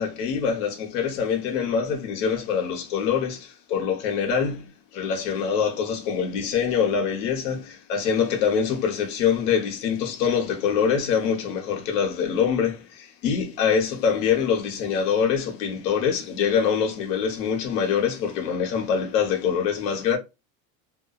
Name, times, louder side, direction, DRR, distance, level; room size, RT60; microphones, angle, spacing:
voice 1, 0.0-20.2, left 7 dB, 65° left, 0.9 m, -24 dB
2.8 x 2.1 x 2.3 m
cardioid pair, 170°, 40 cm